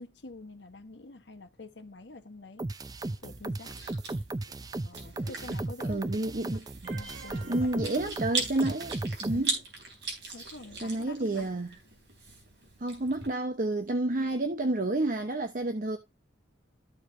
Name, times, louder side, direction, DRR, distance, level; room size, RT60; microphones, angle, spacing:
voice 1, 0.0-2.7 3.2-3.8 4.8-6.0 6.5-6.6 6.9-8.1 9.3-9.4 10.3-11.5, left 2 dB, 65° left, 1.2 m, -46 dB
sound 1, 2.6-9.4, right 2 dB, 20° right, 0.4 m, -35 dB
Chewing mastication, 3.0-13.3, right 3 dB, 65° right, 3.9 m, -40 dB
voice 2, 5.9-6.6 7.5-9.6 10.8-11.7 12.8-16.0, right 2 dB, 45° right, 0.9 m, -30 dB
sound 2, 6.8-8.9, right 4 dB, 85° right, 1.6 m, -50 dB
14.0 x 4.8 x 2.6 m
head